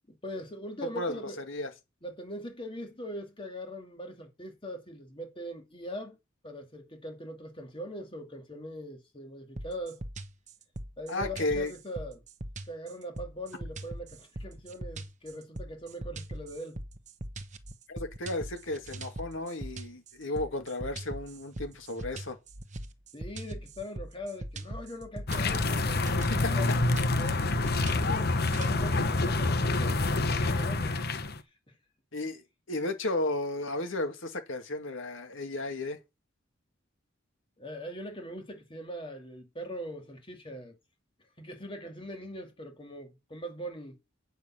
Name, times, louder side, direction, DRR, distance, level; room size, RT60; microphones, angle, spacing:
voice 1, 0.1-1.4 2.0-6.2 6.4-10.0 11.0-12.2 12.7-16.8 23.1-31.0 31.7-31.8 37.6-40.8 41.4-44.0, equal, 25° left, 2.6 m, -41 dB
voice 2, 0.8-1.7 11.1-11.7 17.9-22.4 26.3-26.5 32.1-36.0, left 2 dB, 70° left, 2.2 m, -34 dB
sound 1, 9.6-28.8, right 1 dB, 35° right, 1.1 m, -41 dB
sound 2, 25.3-31.4, left 2 dB, 50° left, 1.0 m, -27 dB
9.1 x 6.5 x 5.8 m
head